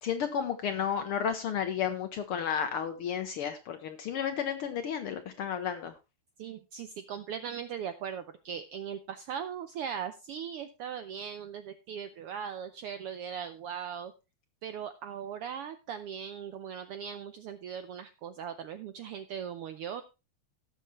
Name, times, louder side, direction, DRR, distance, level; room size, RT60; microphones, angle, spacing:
voice 1, 0.0-5.9, left 8 dB, 70° left, 8 dB, 1.4 m, -32 dB
voice 2, 6.4-14.1 14.6-20.0, right 8 dB, 80° right, 10 dB, 1.3 m, -39 dB
17.5 x 6.7 x 3.1 m, 0.27 s
omnidirectional pair, 3.3 m